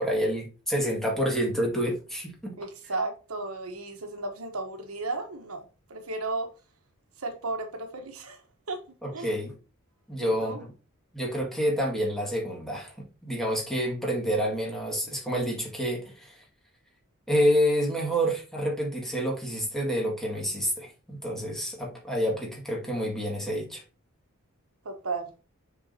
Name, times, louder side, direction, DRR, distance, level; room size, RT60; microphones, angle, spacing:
voice 1, 0.0-2.5 9.0-9.6 10.1-10.7 11.1-16.4 17.3-23.8, equal, ahead, 2.1 m, -28 dB
voice 2, 2.6-5.6 5.9-6.5 7.2-8.4 8.7-8.8 9.1-9.3 10.4-10.6 24.8-25.3, right 3 dB, 75° right, 1.2 m, -34 dB
7.0 x 4.8 x 2.8 m
head